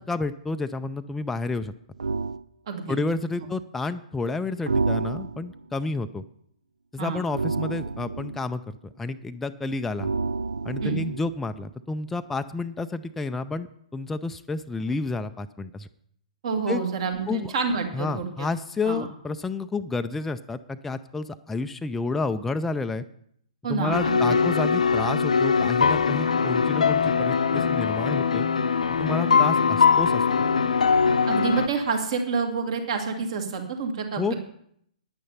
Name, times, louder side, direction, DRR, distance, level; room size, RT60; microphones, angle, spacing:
voice 1, 0.1-1.7 2.9-6.2 6.9-10.1 10.6-13.7 13.9-15.9 16.7-16.8 17.3-17.5 17.9-23.0 23.7-28.5 29.0-30.2 34.2-34.3, left 3 dB, 5° left, 8 dB, 0.4 m, -30 dB
sound 1, 2.0-2.4 4.7-5.6 7.3-8.4 10.0-11.4, right 4 dB, 70° right, 0.4 m, -28 dB
voice 2, 2.7-3.0 7.0-7.2 10.8-11.0 16.4-18.5 18.8-19.1 23.6-24.4 29.2-29.4 31.3-34.3, right 5 dB, 50° right, 5 dB, 2.0 m, -28 dB
sound 2, 23.9-31.7, left 5 dB, 70° left, 0.7 m, -22 dB
9.9 x 9.3 x 5.6 m, 0.69 s
figure-of-eight pair, 115°, 4 cm